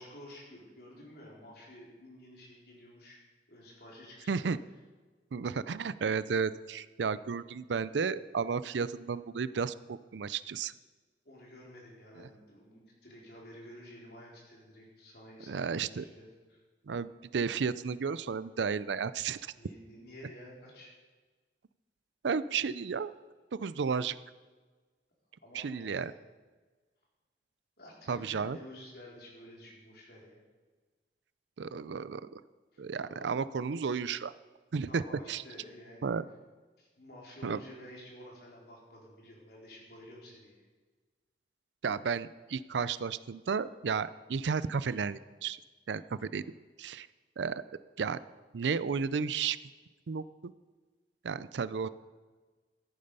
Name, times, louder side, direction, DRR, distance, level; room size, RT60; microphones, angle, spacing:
voice 1, 0.0-3.2 3.5-4.7 11.2-16.6 19.6-20.9 25.4-26.1 27.8-30.4 32.7-33.3 34.9-36.1 36.8-40.7, left 1 dB, 60° left, -3 dB, 3.9 m, -51 dB
voice 2, 4.3-4.6 5.3-10.7 12.2-12.3 15.5-16.0 16.9-19.5 22.2-23.1 23.5-24.2 25.5-26.1 28.1-28.6 31.6-32.4 32.8-34.3 34.7-35.0 35.3-35.4 36.0-36.2 37.4-37.6 41.8-45.6 45.9-46.4 46.8-47.1 47.4-47.6 48.0-48.2 48.5-49.6 50.1-50.5 51.2-51.9, right 5 dB, 85° right, 16 dB, 0.5 m, -33 dB
14.5 x 8.7 x 5.5 m, 1.3 s
head